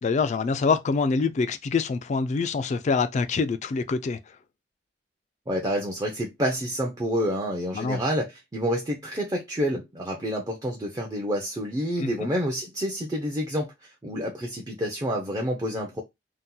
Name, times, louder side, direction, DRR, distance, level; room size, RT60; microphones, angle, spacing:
voice 1, 0.0-4.2 7.7-8.0 12.0-12.3, left 4 dB, 40° left, 0.3 m, -25 dB
voice 2, 5.5-16.0, equal, 20° right, 0.5 m, -28 dB
2.8 x 2.2 x 3.7 m
head